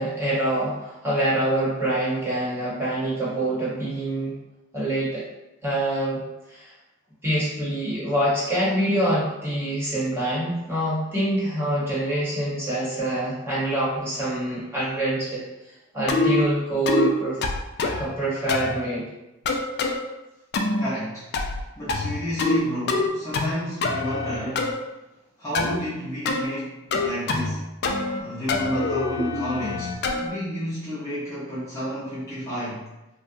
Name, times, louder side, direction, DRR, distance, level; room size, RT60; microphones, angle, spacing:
voice 1, 0.0-4.3 4.7-5.2 5.6-6.2 6.5-6.7 7.2-15.4 15.9-17.4 18.0-19.0, right 1 dB, 10° right, -8 dB, 1.0 m, -25 dB
sound 1, 16.1-16.4 16.9-17.1 17.4-18.1 18.5-18.8 19.5-20.0 20.5-20.9 21.3-21.6 21.9-22.6 22.9-23.5 23.8-24.7 25.5-25.8 26.2-26.4 26.9-27.6 27.8-28.2 28.5-30.3, left 3 dB, 55° left, 0.3 m, -24 dB
voice 2, 20.8-24.7 25.4-27.6 28.1-32.9, equal, 15° left, -11 dB, 0.6 m, -31 dB
2.7 x 2.2 x 2.6 m, 0.97 s
head